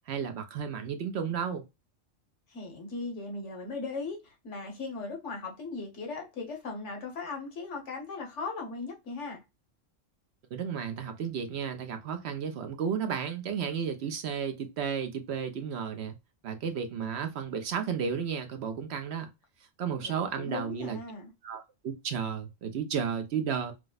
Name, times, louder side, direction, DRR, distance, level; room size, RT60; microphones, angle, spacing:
voice 1, 0.1-1.6 10.5-16.2 16.4-19.3 19.8-21.0 21.4-23.7, right 7 dB, 65° right, 0.8 m, -33 dB
voice 2, 2.5-9.4 20.0-21.3, left 3 dB, 70° left, 1.4 m, -38 dB
4.7 x 2.1 x 2.3 m
omnidirectional pair, 1.3 m